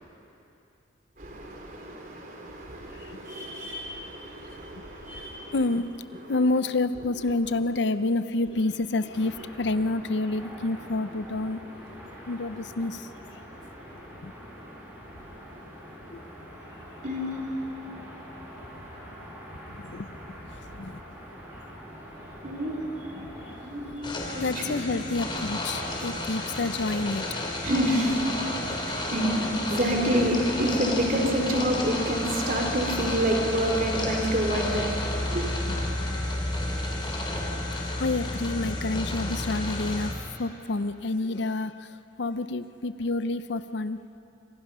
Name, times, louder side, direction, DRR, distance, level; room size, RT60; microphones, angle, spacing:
voice 1, 1.2-5.6 16.0-16.1 17.0-17.4 22.4-22.8 23.6-25.0 27.6-28.2 28.8-29.3 29.7-35.0 35.3-35.4, equal, 45° right, 1 dB, 3.7 m, -28 dB
voice 2, 5.5-5.8 6.3-11.6 12.3-13.4 14.2-14.3 16.1-16.2 19.7-20.4 20.7-21.0 21.6-21.7 23.2-23.6 24.0-27.2 35.9-36.1 38.0-44.0, left 2 dB, 65° left, 13 dB, 0.6 m, -29 dB
sound 1, 9.1-23.9, equal, 10° right, 5.3 m, -45 dB
sound 2, 24.0-40.1, left 1 dB, 25° left, 3.2 m, -31 dB
28.5 x 26.0 x 5.6 m, 2.9 s
head